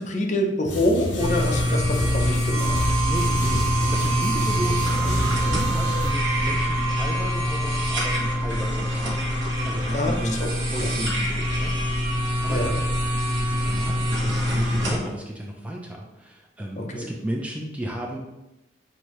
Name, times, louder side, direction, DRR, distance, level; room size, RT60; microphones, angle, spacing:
voice 1, 0.0-2.8 9.9-10.5 10.8-10.9 12.5-12.8 16.8-17.1, left 1 dB, 40° left, 1 dB, 0.6 m, -26 dB
sound 1, 0.6-6.1, left 1 dB, 70° left, 0.9 m, -29 dB
sound 2, 1.2-15.0, left 1 dB, 75° right, 1.2 m, -25 dB
sound 3, 2.5-10.3, right 7 dB, 35° right, 0.9 m, -31 dB
voice 2, 3.1-10.4 10.7-12.7 13.4-18.2, right 1 dB, 5° right, -1 dB, 0.4 m, -34 dB
6.1 x 2.7 x 3.0 m, 0.97 s
head